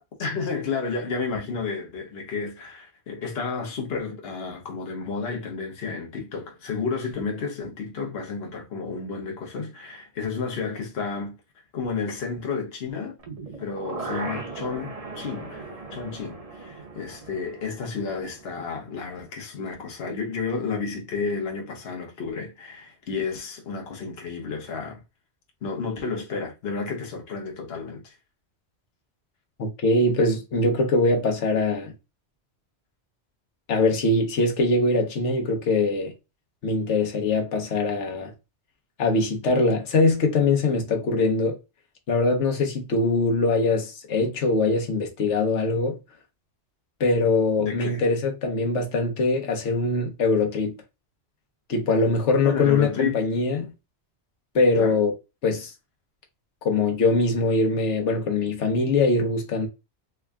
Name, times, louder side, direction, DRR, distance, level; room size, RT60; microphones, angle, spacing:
voice 1, 0.0-11.4 11.7-13.2 13.6-25.0 25.6-28.1 47.6-48.0 52.4-53.2 54.7-55.0, left 5 dB, 60° left, 1.1 m, -31 dB
sound 1, 13.2-19.2 19.5-19.6, right 3 dB, 35° right, 0.8 m, -38 dB
voice 2, 29.6-31.9 33.7-36.1 36.6-38.3 39.0-41.6 42.1-46.0 47.0-50.7 51.7-53.7 54.5-55.1 55.4-55.7 56.6-59.7, left 3 dB, 85° left, 1.2 m, -22 dB
3.5 x 2.2 x 3.5 m
omnidirectional pair, 1.2 m